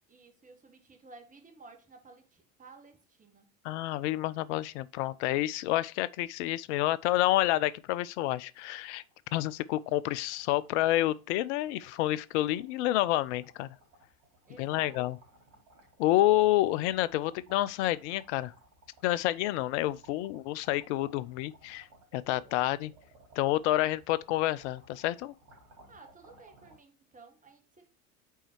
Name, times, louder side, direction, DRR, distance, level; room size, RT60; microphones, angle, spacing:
voice 1, 0.1-3.5 14.5-15.0 25.9-27.9, right 4 dB, 20° right, 1.6 m, -54 dB
voice 2, 3.6-9.0 9.3-13.7 14.6-15.2 16.0-18.5 19.0-21.9 22.1-22.9 23.4-25.3, left 15 dB, 55° left, 0.5 m, -29 dB
sound 1, 8.2-8.3 8.5-26.8, right 1 dB, 65° right, 3.5 m, -60 dB
5.5 x 4.2 x 4.6 m
figure-of-eight pair, 75°, 43 cm